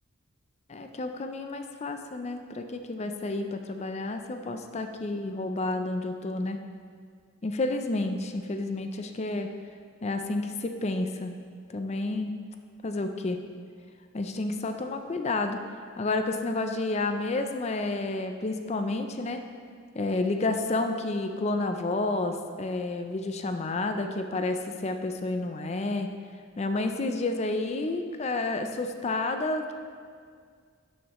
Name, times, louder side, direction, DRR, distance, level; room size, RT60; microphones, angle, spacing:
voice 1, 0.7-6.6 7.4-9.5 10.0-11.3 11.7-12.4 12.8-13.4 14.1-15.6 16.0-19.4 19.9-26.1 26.6-29.7, left 2 dB, 30° left, 6 dB, 0.4 m, -30 dB
11.5 x 6.5 x 3.0 m, 2.1 s
head